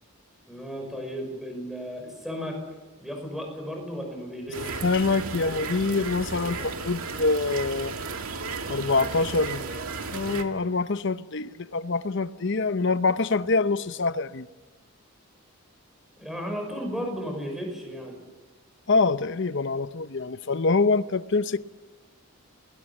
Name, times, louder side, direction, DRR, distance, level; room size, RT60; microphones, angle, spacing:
voice 1, 0.5-2.6 3.0-4.8 16.2-18.2, equal, ahead, 5.7 m, -34 dB
sound 1, 4.5-10.4, right 4 dB, 80° right, 2.2 m, -34 dB
voice 2, 4.8-8.0 8.7-9.7 10.1-14.5 18.9-21.6, left 3 dB, 55° left, 0.7 m, -25 dB
29.0 x 20.5 x 7.3 m
head